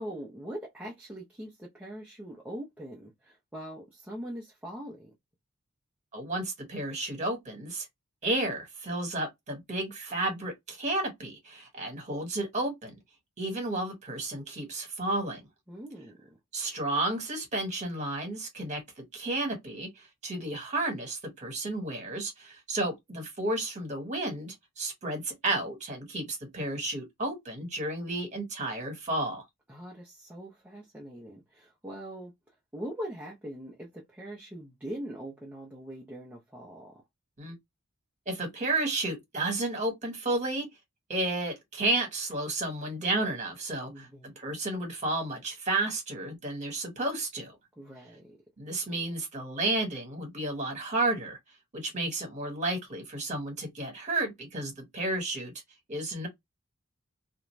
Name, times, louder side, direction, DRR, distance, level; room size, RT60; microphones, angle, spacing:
voice 1, 0.0-5.1 15.7-16.4 29.7-32.3 32.7-37.0 43.9-44.4 47.8-48.4, equal, 5° right, 0.6 m, -42 dB
voice 2, 6.1-7.9 8.2-12.9 13.4-15.4 16.5-29.4 37.4-37.6 38.3-40.7 41.1-44.1 44.4-47.5 48.6-51.4 51.7-55.5 55.9-56.3, right 2 dB, 35° right, 1.3 m, -32 dB
2.5 x 2.2 x 3.1 m
head